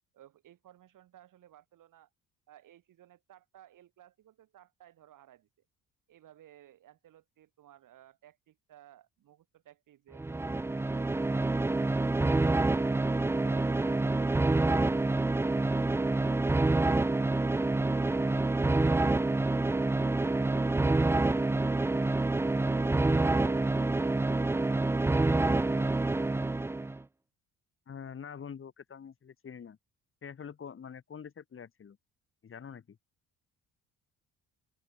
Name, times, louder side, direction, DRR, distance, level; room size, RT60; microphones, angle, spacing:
voice 1, 0.1-2.1 2.5-5.5 6.1-10.4, right 12 dB, 65° right, 6.9 m, -57 dB
sound 1, 10.1-27.0, right 2 dB, 5° right, 0.4 m, -27 dB
voice 2, 27.9-29.8 30.2-32.0 32.4-33.0, left 7 dB, 40° left, 4.6 m, -45 dB
open air
cardioid pair, 125°, 34 cm